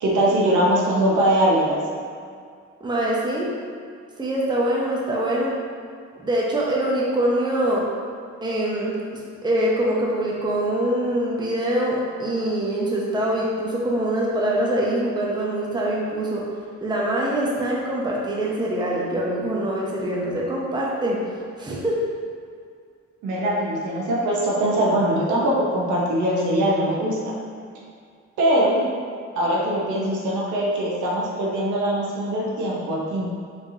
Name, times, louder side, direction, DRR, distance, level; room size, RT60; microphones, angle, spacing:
voice 1, 0.0-1.8 23.2-27.2 28.4-28.8 29.4-33.3, right 1 dB, 75° right, -4 dB, 0.9 m, -22 dB
voice 2, 2.8-3.5 4.2-5.5 6.2-7.9 8.4-9.0 9.4-16.4 16.8-21.2 21.6-22.0, right 1 dB, 15° right, -4 dB, 0.7 m, -24 dB
4.1 x 3.3 x 2.7 m, 2.2 s
cardioid pair, 90°, 30 cm